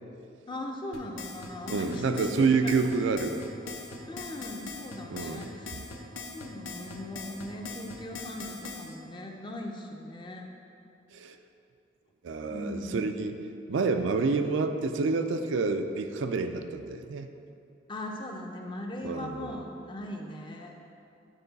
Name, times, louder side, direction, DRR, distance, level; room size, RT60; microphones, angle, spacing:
voice 1, 0.5-2.7 4.1-5.8 6.3-10.5 12.5-13.1 17.9-20.7, left 1 dB, 25° left, 2 dB, 0.5 m, -39 dB
sound 1, 0.9-8.9, left 3 dB, 85° left, 0.8 m, -41 dB
voice 2, 1.7-3.4 5.1-5.5 11.1-11.4 12.2-13.4 13.7-17.3 19.0-19.6, right 4 dB, 75° right, 7 dB, 0.4 m, -28 dB
9.1 x 3.8 x 4.0 m, 2.6 s
head